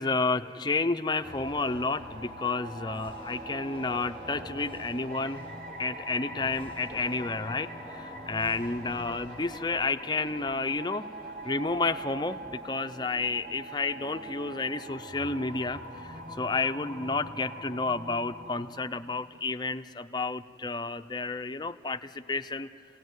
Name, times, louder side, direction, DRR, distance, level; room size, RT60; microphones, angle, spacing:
voice 1, 0.0-5.5 5.8-11.1 11.4-22.7, left 3 dB, 25° left, 9 dB, 0.6 m, -31 dB
sound 1, 1.2-2.2 2.9-5.9 6.4-7.8 8.3-9.7 10.2-10.3, equal, 30° right, 7.1 m, -58 dB
sound 2, 1.2-18.6, right 1 dB, 50° right, 3.5 m, -42 dB
26.0 x 17.5 x 9.5 m, 2.5 s
head